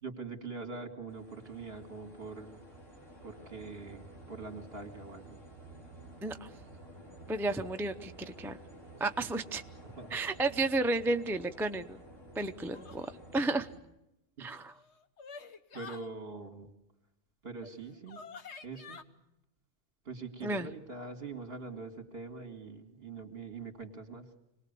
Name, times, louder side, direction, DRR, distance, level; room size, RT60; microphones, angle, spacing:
voice 1, 0.0-2.6 3.2-5.4 10.0-10.2 14.4-14.5 15.7-16.7 17.4-18.2 18.6-19.0 20.0-24.3, right 4 dB, 50° right, 5 dB, 2.9 m, -43 dB
sound 1, 1.1-13.8, right 1 dB, 85° left, 4.4 m, -52 dB
voice 2, 7.3-8.6 9.0-9.6 10.1-12.0 12.3-13.1 13.3-13.7 14.4-14.7 20.4-20.7, right 2 dB, 5° right, 7 dB, 0.5 m, -32 dB
sound 2, 12.7-13.2 14.6-16.1 17.6-17.7 18.1-19.0, left 5 dB, 60° left, 1.4 m, -48 dB
26.5 x 19.5 x 6.9 m, 0.88 s
omnidirectional pair, 1.3 m